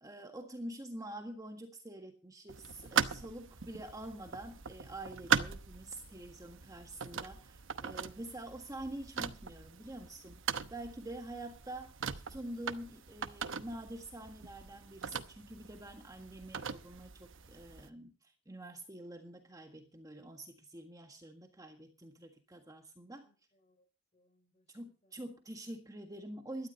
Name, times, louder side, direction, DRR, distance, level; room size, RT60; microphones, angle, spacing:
voice 1, 0.0-10.4 10.7-11.9 12.3-23.3 24.7-26.7, right 1 dB, 15° right, 5 dB, 1.6 m, -46 dB
sound 1, 2.5-17.9, right 7 dB, 65° right, 0.9 m, -40 dB
voice 2, 23.2-23.9 24.1-25.8, left 1 dB, 35° left, 6 dB, 6.1 m, -75 dB
17.5 x 12.5 x 4.0 m, 0.35 s
head